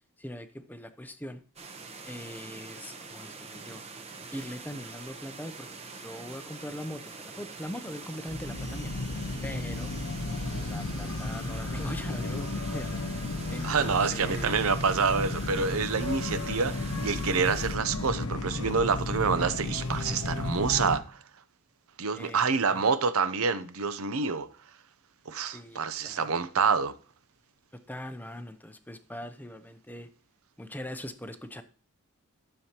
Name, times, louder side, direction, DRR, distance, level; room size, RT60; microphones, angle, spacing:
voice 1, 0.2-1.4 2.0-3.8 4.3-8.9 9.4-9.9 10.4-12.9 13.5-14.6 22.1-22.8 25.5-26.3 27.9-30.1 30.6-31.6, left 1 dB, 10° left, 0.6 m, -41 dB
sound 1, 1.6-17.8, right 4 dB, 30° right, 1.0 m, -44 dB
sound 2, 8.3-21.0, left 2 dB, 80° left, 1.0 m, -33 dB
voice 2, 13.6-21.2 22.0-24.5 25.3-26.9, right 5 dB, 70° right, 0.7 m, -27 dB
12.5 x 7.0 x 3.0 m
head